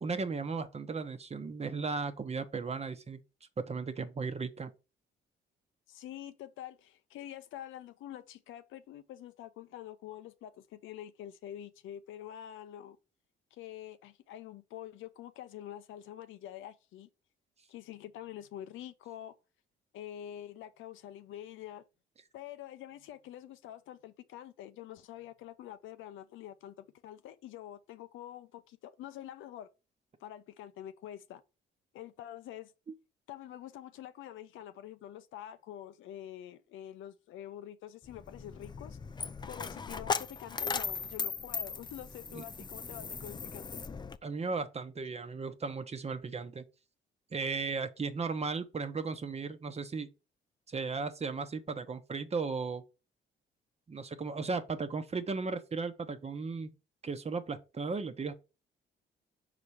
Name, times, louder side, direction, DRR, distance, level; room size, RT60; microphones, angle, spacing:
voice 1, 0.0-3.2 3.7-4.7 42.3-42.4 44.2-46.6 47.3-50.1 50.7-52.8 53.9-56.7 57.0-58.3, right 4 dB, 30° right, 0.9 m, -36 dB
voice 2, 5.9-13.0 13.5-17.1 17.7-19.3 19.9-21.8 22.3-29.7 30.2-31.4 31.9-32.7 33.3-39.0 39.5-43.8, left 11 dB, 85° left, 0.6 m, -46 dB
Coin (dropping), 38.1-44.2, left 5 dB, 20° left, 0.4 m, -38 dB
5.6 x 4.0 x 4.7 m
cardioid pair, 90°, 20 cm